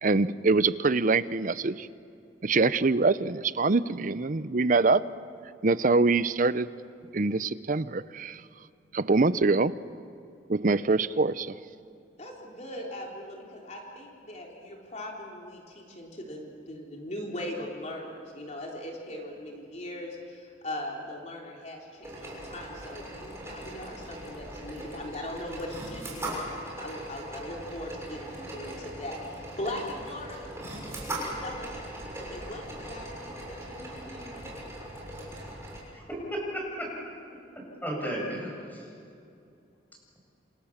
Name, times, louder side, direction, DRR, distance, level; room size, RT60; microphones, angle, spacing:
voice 1, 0.0-1.9 2.4-5.1 5.6-6.7 7.1-8.4 8.9-9.7 10.5-11.6, right 3 dB, 45° right, 15 dB, 0.7 m, -24 dB
voice 2, 12.2-30.5 31.4-31.7 32.2-34.4, left 1 dB, 35° left, -1 dB, 3.7 m, -40 dB
sound 1, 22.0-35.8, right 1 dB, 15° right, 6.6 m, -40 dB
voice 3, 35.9-36.9 37.8-38.8, equal, 10° left, -1 dB, 7.4 m, -34 dB
29.0 x 26.5 x 7.3 m, 2.5 s
head